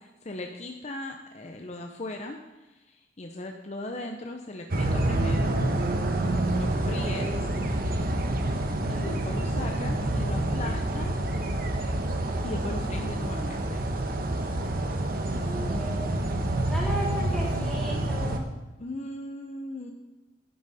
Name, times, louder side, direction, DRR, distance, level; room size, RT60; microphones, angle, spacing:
voice 1, 0.0-5.6 6.5-7.5 8.9-11.2 12.4-13.8 17.4-17.7 18.8-19.9, left 2 dB, 40° left, 3 dB, 0.8 m, -38 dB
sound 1, 4.7-18.4, right 1 dB, 55° right, 1.1 m, -28 dB
voice 2, 15.3-16.2 16.7-18.5, equal, 5° left, -7 dB, 3.8 m, -35 dB
12.0 x 10.5 x 4.2 m, 1.1 s
head